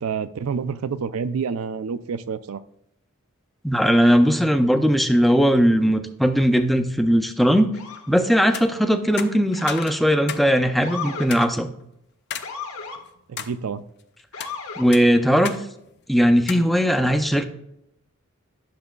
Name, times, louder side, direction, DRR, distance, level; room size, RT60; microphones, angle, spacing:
voice 1, 0.0-2.6 13.3-13.8, right 6 dB, 80° right, 14 dB, 0.4 m, -28 dB
voice 2, 3.6-7.7 8.1-11.7 14.8-15.5 16.1-17.4, equal, ahead, 6 dB, 0.4 m, -18 dB
Motor vehicle (road) / Siren, 7.7-8.1 9.5-10.1 10.8-11.3 12.4-13.0 14.3-14.9, left 5 dB, 90° left, 1.3 m, -35 dB
sound 1, 8.4-8.7 9.2-10.5 10.8-10.9 11.3-11.5 12.3-12.5 13.0-13.5 14.2-14.5 14.9-15.6 15.9-16.0 16.5-16.7, left 8 dB, 50° left, 0.5 m, -33 dB
10.5 x 6.7 x 2.3 m, 0.78 s
head